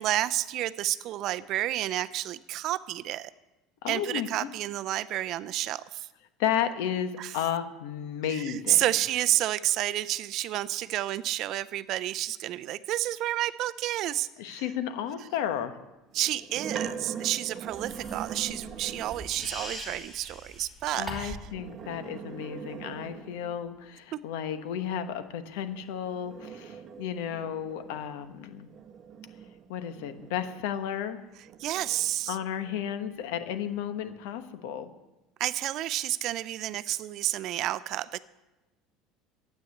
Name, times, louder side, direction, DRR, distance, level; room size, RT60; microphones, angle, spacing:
voice 1, 0.0-3.3 3.9-6.1 7.2-7.3 8.3-14.6 16.1-21.4 24.1-24.2 31.6-32.4 35.4-38.2, right 14 dB, 45° right, 15 dB, 0.5 m, -30 dB
voice 2, 3.8-4.5 6.4-8.8 14.4-15.8 20.9-28.7 29.7-31.2 32.3-34.9, left 9 dB, 80° left, 9 dB, 1.2 m, -33 dB
sound 1, 16.1-19.5 21.4-23.7 25.7-30.9 31.4-33.2, right 7 dB, 30° right, 1.0 m, -42 dB
sound 2, 17.7-21.5, right 1 dB, ahead, 2.8 m, -42 dB
12.5 x 9.1 x 7.8 m, 1.0 s
cardioid pair, 165°, 0 cm